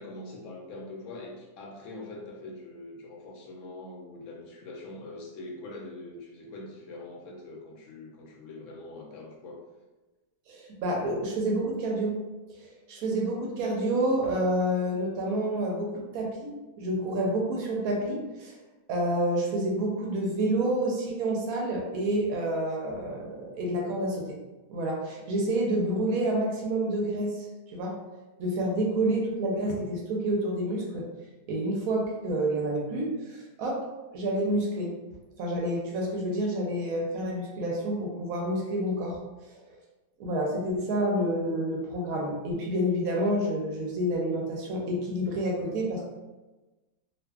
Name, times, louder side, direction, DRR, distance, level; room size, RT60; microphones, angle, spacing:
voice 1, 0.0-9.6, left 2 dB, 70° left, -1 dB, 0.8 m, -43 dB
voice 2, 10.5-12.1 12.5-18.6 18.9-24.3 24.7-27.5 27.7-28.0 28.4-31.1 31.5-33.8 34.1-34.9 35.4-39.2 39.4-39.6 40.2-46.1, right 1 dB, 70° right, -1 dB, 0.9 m, -28 dB
2.5 x 2.4 x 2.3 m, 1.1 s
omnidirectional pair, 1.7 m